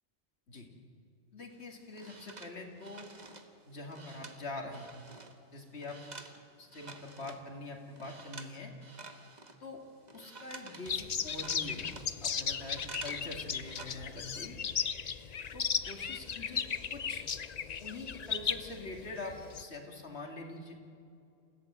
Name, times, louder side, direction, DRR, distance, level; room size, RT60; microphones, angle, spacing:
voice 1, 1.3-3.1 3.7-4.9 5.5-6.0 6.6-8.7 9.6-9.8 10.1-14.6 15.5-17.2 17.8-20.8, left 2 dB, 65° left, 2 dB, 2.7 m, -44 dB
sound 1, 1.5-7.5 7.9-8.5 8.8-13.3 13.5-13.9, right 3 dB, 40° right, 1.5 m, -50 dB
sound 2, 10.9-19.6, left 7 dB, 45° left, 0.6 m, -36 dB
29.0 x 16.0 x 7.5 m, 2.7 s
omnidirectional pair, 1.2 m